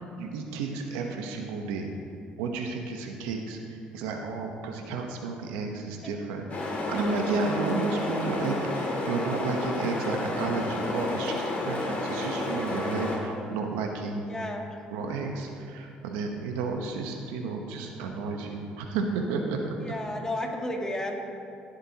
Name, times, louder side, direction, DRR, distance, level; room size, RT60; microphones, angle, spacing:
voice 1, 0.2-1.9 2.4-14.2 14.9-19.7, right 4 dB, 90° right, 3 dB, 1.0 m, -32 dB
sound 1, 6.5-13.2, left 2 dB, 45° left, 2.7 m, -31 dB
voice 2, 14.2-14.7 19.9-21.2, left 1 dB, 15° left, 1 dB, 1.8 m, -32 dB
16.5 x 7.8 x 2.9 m, 2.6 s
supercardioid pair, 70°, 3 cm